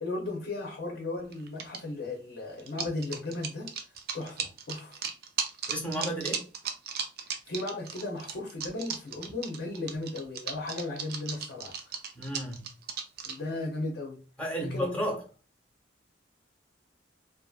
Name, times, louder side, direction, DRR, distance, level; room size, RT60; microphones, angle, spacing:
voice 1, 0.0-3.7 4.1-5.0 7.2-11.9 13.2-14.2 14.6-14.9, left 2 dB, 65° left, 0.6 m, -36 dB
sound 1, 1.3-1.8 2.6-13.4, right 6 dB, 55° right, 0.4 m, -36 dB
voice 2, 5.7-6.4 12.2-12.7 14.4-15.2, equal, 5° left, 0.7 m, -32 dB
2.6 x 2.5 x 2.3 m
head